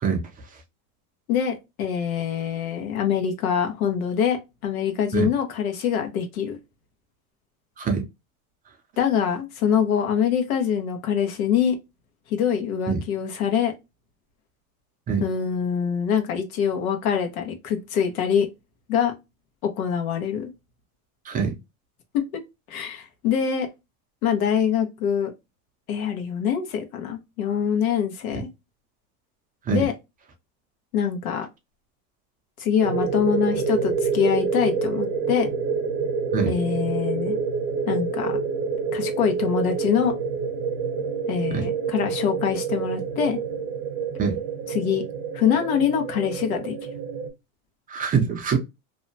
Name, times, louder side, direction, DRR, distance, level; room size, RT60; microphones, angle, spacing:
voice 1, 1.3-6.6 9.0-11.8 12.3-13.7 15.2-18.5 18.9-19.1 19.6-20.5 22.1-22.2 22.7-23.7 24.2-25.3 25.9-28.5 29.7-29.9 30.9-31.5 32.6-35.5 36.5-37.4 37.9-38.4 38.9-40.1 41.3-43.4 44.7-45.0 45.3-46.7, left 8 dB, 85° left, 1.0 m, -24 dB
sound 1, 32.8-47.3, right 5 dB, 50° right, 0.9 m, -27 dB
voice 2, 47.9-48.6, right 6 dB, 20° right, 0.5 m, -23 dB
2.7 x 2.2 x 2.6 m
supercardioid pair, 135°, 42 cm